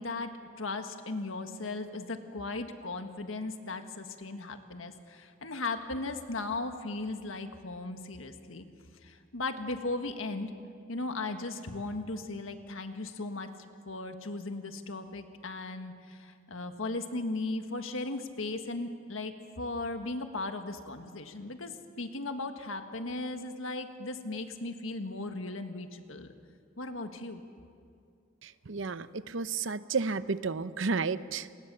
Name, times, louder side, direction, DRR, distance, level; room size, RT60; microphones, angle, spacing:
voice 1, 0.0-8.6 9.0-10.5 10.9-13.5 13.8-26.3 26.8-27.4, left 2 dB, 85° left, 7 dB, 1.6 m, -37 dB
voice 2, 28.4-31.5, right 4 dB, 70° right, 14 dB, 0.7 m, -32 dB
28.0 x 20.0 x 6.9 m, 2.3 s
head